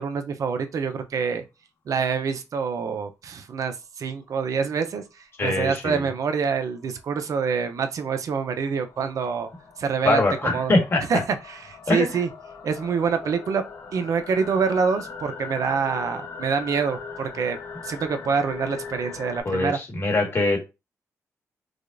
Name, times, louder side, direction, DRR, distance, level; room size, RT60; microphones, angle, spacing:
voice 1, 0.0-1.4 1.9-5.0 5.4-9.5 9.8-10.2 10.5-10.7 11.1-11.2 11.5-12.3 12.6-13.6 13.9-17.6 17.8-19.8, right 5 dB, 65° right, 0.6 m, -26 dB
voice 2, 5.4-6.1 10.0-11.0 11.9-12.1 19.4-20.6, left 2 dB, 40° left, 1.5 m, -23 dB
sound 1, 6.7-19.4, left 5 dB, 80° left, 1.0 m, -40 dB
4.9 x 2.3 x 2.5 m
cardioid pair, 110°, 6 cm